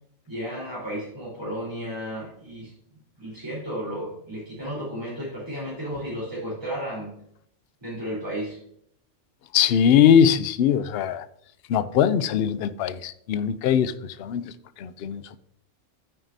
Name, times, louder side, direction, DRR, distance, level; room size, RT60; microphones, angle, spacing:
voice 1, 0.3-2.7 3.2-7.1 7.8-8.6, equal, 20° right, 3.9 m, -33 dB
voice 2, 9.5-11.3 11.7-15.4, left 8 dB, 65° left, 0.7 m, -21 dB
9.3 x 9.1 x 2.7 m
omnidirectional pair, 1.3 m